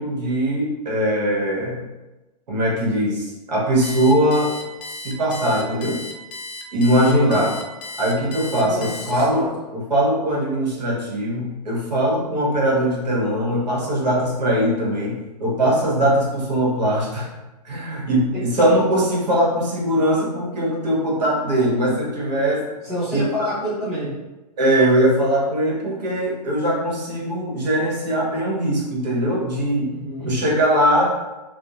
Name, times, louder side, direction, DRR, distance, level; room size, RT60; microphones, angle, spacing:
voice 1, 0.0-1.8 2.5-4.5 5.0-6.0 6.7-7.5 8.0-9.5 9.7-17.3 17.6-22.6 23.1-23.2 24.6-29.9 30.2-31.0, equal, 80° right, -4 dB, 1.1 m, -21 dB
Alarm, 3.8-9.5, left 2 dB, 70° left, 0.5 m, -35 dB
voice 2, 7.0-7.4 8.7-9.5 18.3-18.5 22.8-24.1 29.9-30.3, equal, ahead, -17 dB, 0.5 m, -28 dB
2.6 x 2.0 x 2.8 m, 1.1 s
hypercardioid pair, 180°, 21 cm